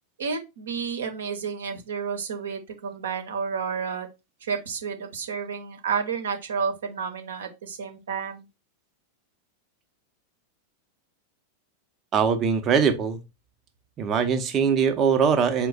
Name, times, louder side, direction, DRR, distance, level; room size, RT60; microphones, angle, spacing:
voice 1, 0.2-4.1 4.4-8.4, right 6 dB, 65° right, 0.9 m, -31 dB
voice 2, 12.1-13.2 14.0-15.7, right 6 dB, 30° right, 0.7 m, -22 dB
4.7 x 2.2 x 4.0 m
figure-of-eight pair, 90°, 0 cm